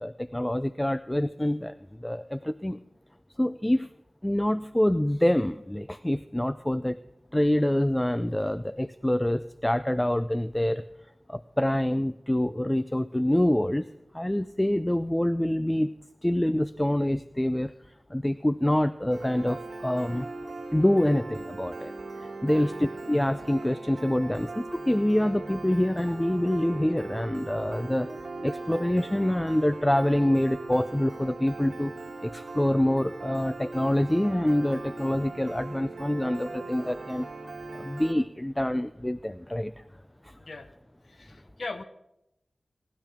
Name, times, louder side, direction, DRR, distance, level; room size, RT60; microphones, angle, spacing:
voice 1, 0.0-1.7 2.0-2.8 3.4-3.9 4.2-7.0 7.3-10.8 11.3-13.9 14.1-15.9 16.2-17.7 18.1-20.3 20.7-21.9 22.2-31.9 32.2-37.3 37.7-39.7 40.2-40.3, left 1 dB, 15° left, 13 dB, 0.4 m, -26 dB
Piano, 19.1-38.1, right 3 dB, 85° right, 1.3 m, -39 dB
voice 2, 41.0-41.8, left 3 dB, 75° left, 10 dB, 0.8 m, -40 dB
22.0 x 10.5 x 3.5 m, 0.87 s
wide cardioid pair, 65°, 0 cm